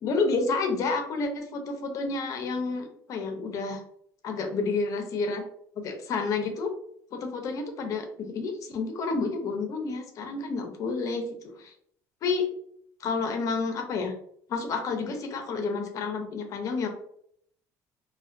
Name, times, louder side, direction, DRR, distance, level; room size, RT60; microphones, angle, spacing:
voice 1, 0.0-3.8 4.2-5.4 5.8-6.7 7.1-11.7 12.2-12.4 13.0-14.1 14.5-16.9, left 4 dB, 55° left, 5 dB, 0.6 m, -30 dB
2.3 x 2.1 x 2.4 m, 0.67 s
cardioid pair, 105°, 7 cm